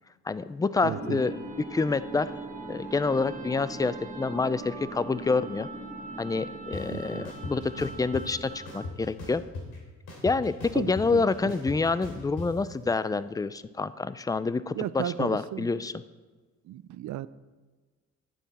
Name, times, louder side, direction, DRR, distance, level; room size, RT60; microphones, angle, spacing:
voice 1, 0.3-2.3 2.7-5.7 6.2-9.4 10.2-16.0, left 4 dB, 10° left, 15 dB, 0.4 m, -28 dB
voice 2, 0.8-1.2 6.9-7.3 10.7-11.3 14.7-15.7 16.7-17.3, right 13 dB, 70° right, 16 dB, 0.5 m, -35 dB
sound 1, 0.9-9.1, right 2 dB, 25° right, 1.7 m, -40 dB
sound 2, 6.7-6.8 7.2-8.2 8.7-9.8 10.1-12.5, left 3 dB, 90° left, 3.2 m, -38 dB
11.5 x 9.3 x 4.2 m, 1.3 s
cardioid pair, 90°, 30 cm